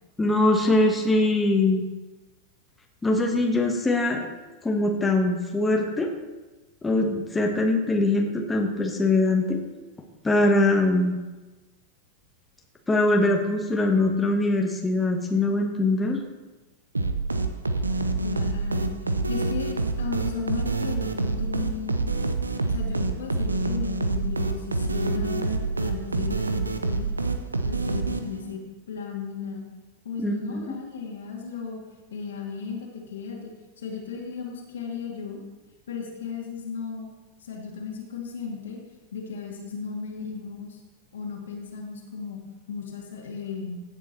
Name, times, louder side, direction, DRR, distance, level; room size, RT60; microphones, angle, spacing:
voice 1, 0.2-1.8 3.0-4.3 4.6-6.1 6.8-9.6 10.2-11.2 12.9-16.2 30.2-30.7, left 2 dB, 10° left, 2 dB, 1.3 m, -22 dB
sound 1, 16.9-28.5, right 3 dB, 80° right, 0.8 m, -27 dB
voice 2, 18.2-22.0 22.7-27.1 27.6-28.6 28.9-29.7 30.0-31.8 32.1-33.5 33.8-35.4 35.9-37.1 37.5-38.8 39.1-40.8 41.1-42.4 42.7-43.8, left 6 dB, 65° left, 0 dB, 2.3 m, -35 dB
16.0 x 7.2 x 4.2 m, 1.2 s
figure-of-eight pair, 90°, 0 cm